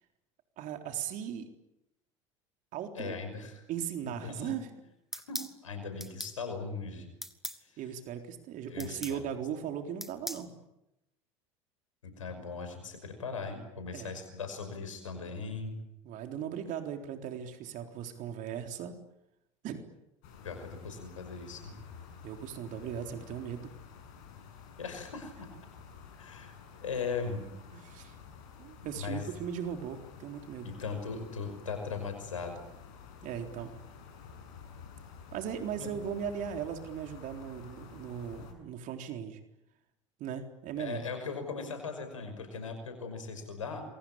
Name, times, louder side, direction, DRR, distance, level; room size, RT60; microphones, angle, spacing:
voice 1, 0.6-1.5 2.7-3.2 3.7-4.7 7.8-10.6 13.9-14.1 16.0-19.0 19.6-19.8 22.2-23.7 27.7-28.2 28.6-30.7 33.2-33.8 35.3-39.4 40.2-41.0, right 8 dB, 55° right, 5 dB, 3.8 m, -38 dB
voice 2, 2.9-3.5 4.0-4.6 5.1-7.1 7.6-7.8 8.7-9.2 12.0-15.8 20.4-21.8 24.8-25.5 26.2-26.5 26.8-27.5 28.9-29.2 30.6-32.6 35.8-35.9 40.8-43.8, left 5 dB, 85° left, 7 dB, 5.7 m, -39 dB
sound 1, 5.1-5.5 6.0-6.4 7.2-7.6 8.8-9.2 10.0-10.5, equal, ahead, 2.3 m, -39 dB
sound 2, 20.2-38.5, left 6 dB, 65° left, 7.7 m, -51 dB
28.0 x 23.0 x 8.8 m, 0.88 s
hypercardioid pair, 75°, 16 cm